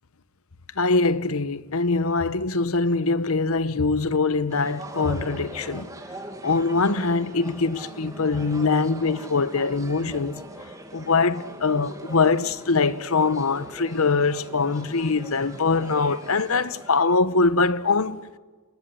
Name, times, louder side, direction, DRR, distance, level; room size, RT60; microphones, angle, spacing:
voice 1, 0.8-5.9 6.4-10.4 10.9-18.2, left 4 dB, 80° left, 1.0 m, -23 dB
sound 1, 4.5-17.0, right 1 dB, 15° right, 2.4 m, -41 dB
28.0 x 19.5 x 9.8 m
head